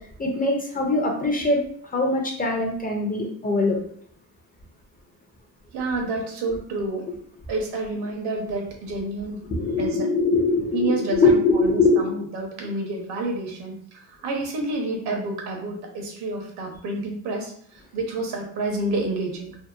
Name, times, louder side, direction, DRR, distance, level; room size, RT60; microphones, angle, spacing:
voice 1, 0.2-1.6 1.9-3.8 9.5-12.1, left 3 dB, 20° left, 0 dB, 0.5 m, -22 dB
voice 2, 5.7-7.1 7.5-9.4 9.8-10.1 10.7-19.6, right 2 dB, 70° right, 1 dB, 0.9 m, -29 dB
2.8 x 2.1 x 2.3 m, 0.63 s
cardioid pair, 95°, 41 cm